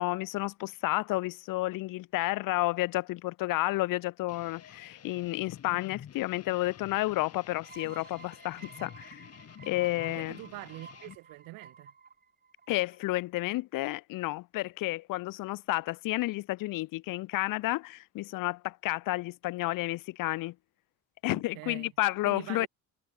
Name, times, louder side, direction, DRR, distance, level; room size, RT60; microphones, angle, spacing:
voice 1, 0.0-9.3 9.6-10.4 12.7-20.5 21.2-22.7, left 18 dB, 80° left, 1.5 m, -31 dB
sound 1, 4.3-11.2, left 9 dB, 50° left, 7.9 m, -50 dB
sound 2, 7.6-13.1, right 5 dB, 30° right, 2.4 m, -52 dB
voice 2, 10.1-11.9 21.3-21.9 22.2-22.7, right 21 dB, 90° right, 4.3 m, -44 dB
cardioid pair, 105°, 33 cm